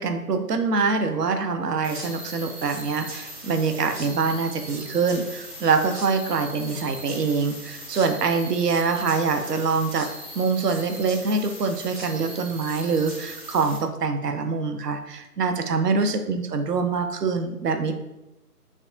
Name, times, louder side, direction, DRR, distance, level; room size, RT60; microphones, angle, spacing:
voice 1, 0.0-10.1 10.4-17.9, right 4 dB, 85° right, 7 dB, 0.5 m, -24 dB
sound 1, 1.8-13.8, right 1 dB, 40° right, 0.7 m, -39 dB
3.3 x 2.2 x 2.5 m, 0.95 s
figure-of-eight pair, 150°, 47 cm